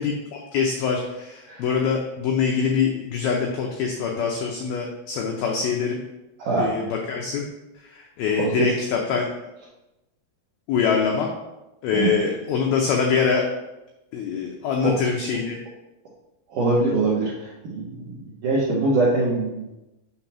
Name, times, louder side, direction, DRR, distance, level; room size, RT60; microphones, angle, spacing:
voice 1, 0.0-6.0 6.6-7.4 7.8-9.3 10.7-11.3 11.8-13.4 14.1-15.6, left 6 dB, 85° left, 0 dB, 2.1 m, -24 dB
voice 2, 6.4-6.7 8.4-8.7 11.9-12.1 14.8-15.0 16.5-19.8, right 3 dB, 65° right, -7 dB, 2.1 m, -23 dB
7.0 x 3.9 x 5.9 m, 0.97 s
omnidirectional pair, 5.3 m